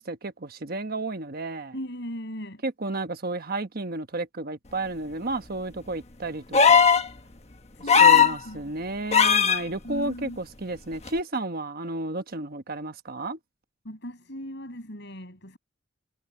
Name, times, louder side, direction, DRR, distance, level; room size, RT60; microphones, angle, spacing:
voice 1, 0.0-1.7 2.6-6.9 8.0-13.4, right 2 dB, 50° right, 1.2 m, -32 dB
voice 2, 1.7-2.6 7.7-8.7 9.8-10.4 13.8-15.6, equal, 60° left, 6.6 m, -38 dB
sound 1, 6.5-7.1 7.9-8.4 9.1-9.6 11.1-11.2, left 7 dB, 35° left, 1.2 m, -16 dB
head